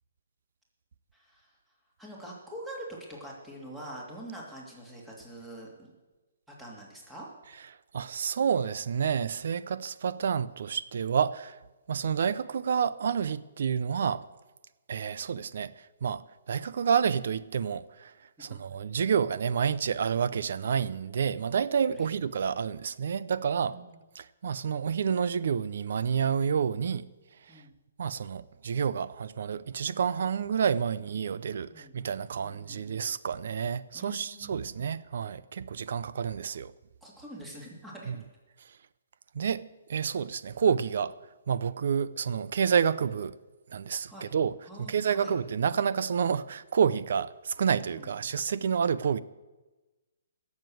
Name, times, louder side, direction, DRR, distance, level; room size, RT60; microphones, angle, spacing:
voice 1, 1.1-1.5 2.0-5.9 6.6-7.3 18.4-18.5 21.9-22.1 23.6-24.0 27.5-27.7 31.7-31.9 32.4-32.8 33.9-34.8 37.0-38.2 44.1-44.3 44.6-45.3 47.9-48.1, right 1 dB, 5° right, 2.8 m, -45 dB
voice 2, 7.9-11.6 11.9-14.2 14.9-18.1 18.4-23.8 24.1-27.1 28.0-36.7 38.1-38.2 39.3-41.2 41.5-43.4 43.7-49.2, right 7 dB, 65° right, 0.6 m, -29 dB
17.0 x 7.4 x 7.8 m
hypercardioid pair, 155°, 0 cm